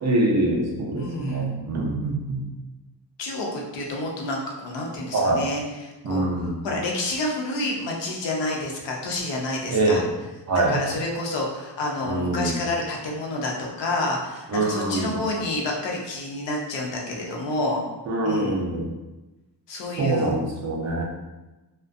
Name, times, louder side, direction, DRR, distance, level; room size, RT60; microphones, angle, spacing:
voice 1, 0.0-2.4 5.1-5.4 6.0-6.5 9.7-10.0 10.5-10.8 12.0-12.6 14.5-15.1 18.1-18.9 20.0-21.0, right 2 dB, 40° right, -2 dB, 0.5 m, -24 dB
voice 2, 0.9-1.5 3.2-10.0 10.5-17.8 18.2-18.6 19.7-20.3, left 2 dB, 85° left, -1 dB, 0.7 m, -29 dB
2.4 x 2.1 x 2.5 m, 1.1 s
wide cardioid pair, 145°, 42 cm